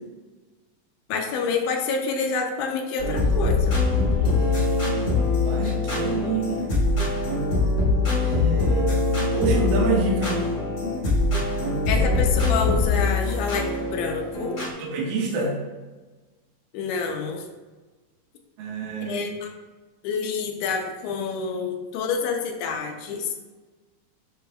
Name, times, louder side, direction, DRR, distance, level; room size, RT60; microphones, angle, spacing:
voice 1, 1.1-3.7 11.9-14.6 16.7-17.4 19.0-19.5 20.0-23.3, left 5 dB, 85° left, 2 dB, 1.8 m, -28 dB
sound 1, 3.0-14.7, left 3 dB, 55° left, 0.9 m, -23 dB
voice 2, 5.5-6.6 8.2-8.9 9.3-10.4 11.9-12.0 14.7-15.6 18.6-19.2, right 4 dB, 70° right, -3 dB, 1.4 m, -27 dB
6.9 x 3.4 x 2.2 m, 1.3 s
omnidirectional pair, 4.1 m